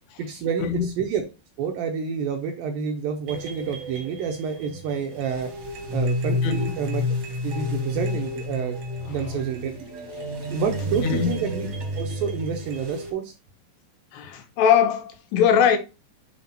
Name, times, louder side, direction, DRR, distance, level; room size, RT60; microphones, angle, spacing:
voice 1, 0.2-1.2 1.6-5.5 5.9-7.0 7.4-8.8 9.0-9.7 10.5-11.7 12.0-13.3, right 6 dB, 75° right, 2.2 m, -28 dB
sound 1, 3.3-13.1, left 2 dB, 55° right, 1.8 m, -30 dB
voice 2, 14.1-15.8, left 8 dB, 80° left, 3.0 m, -21 dB
7.5 x 3.4 x 4.2 m
omnidirectional pair, 4.8 m